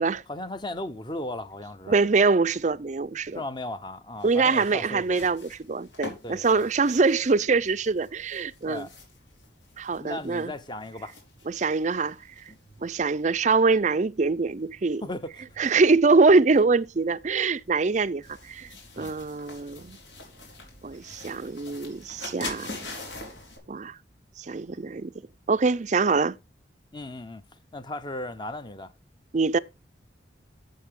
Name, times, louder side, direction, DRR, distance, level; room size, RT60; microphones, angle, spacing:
voice 1, 0.3-2.0 3.3-5.2 6.2-6.7 8.7-8.9 10.0-11.1 15.0-15.5 19.0-19.1 26.9-27.5 27.7-28.9, left 1 dB, 25° left, 0.9 m, -36 dB
voice 2, 1.9-3.4 4.2-8.9 9.8-10.5 11.5-12.2 12.8-15.0 15.6-18.7 19.0-20.0 20.8-22.8 23.7-24.0 24.4-25.1 25.5-26.4 29.3-29.6, right 4 dB, 40° right, 0.5 m, -24 dB
sound 1, 4.2-23.6, left 2 dB, 85° left, 4.7 m, -45 dB
12.0 x 7.7 x 3.7 m
head